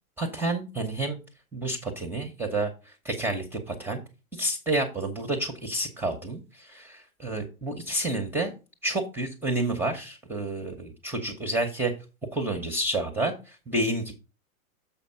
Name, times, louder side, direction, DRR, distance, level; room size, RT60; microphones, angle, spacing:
voice 1, 0.2-1.2 1.5-4.0 4.3-8.5 8.8-11.9 12.3-14.1, right 2 dB, 5° right, 5 dB, 0.8 m, -29 dB
7.1 x 5.1 x 5.6 m, 0.31 s
hypercardioid pair, 135°, 43 cm